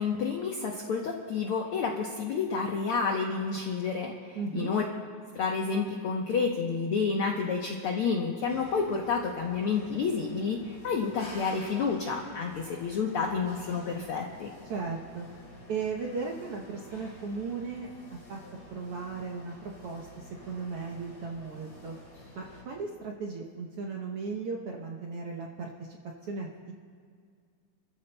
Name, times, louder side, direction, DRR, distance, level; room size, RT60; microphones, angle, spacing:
voice 1, 0.0-4.8 5.3-14.5, left 5 dB, 80° left, 1 dB, 1.2 m, -30 dB
voice 2, 4.3-4.7 14.7-15.3 15.7-18.4 18.7-21.9 22.3-26.7, right 4 dB, 70° right, 0 dB, 1.4 m, -36 dB
sound 1, 8.5-22.6, left 1 dB, 40° left, 4.3 m, -50 dB
28.5 x 14.0 x 2.2 m, 2.1 s
omnidirectional pair, 3.6 m